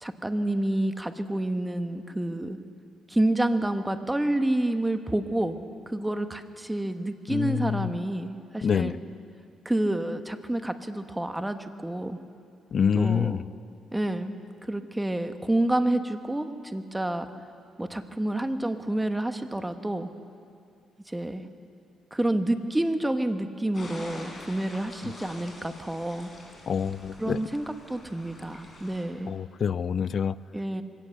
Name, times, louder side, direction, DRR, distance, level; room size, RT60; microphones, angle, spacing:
voice 1, 0.0-2.6 3.1-5.6 5.9-9.0 9.6-12.2 12.9-13.4 13.9-14.4 14.6-17.3 17.8-20.1 21.1-21.5 22.1-26.3 27.2-29.3 30.5-30.8, right 1 dB, 10° right, 8 dB, 1.3 m, -28 dB
voice 2, 7.3-7.9 8.6-9.0 12.7-13.4 25.0-25.1 26.7-27.4 29.3-30.4, left 7 dB, 50° left, 18 dB, 0.5 m, -26 dB
sound 1, 23.7-29.0, left 2 dB, 30° left, 5.3 m, -46 dB
23.0 x 17.5 x 6.6 m, 2.4 s
cardioid pair, 90°, 0 cm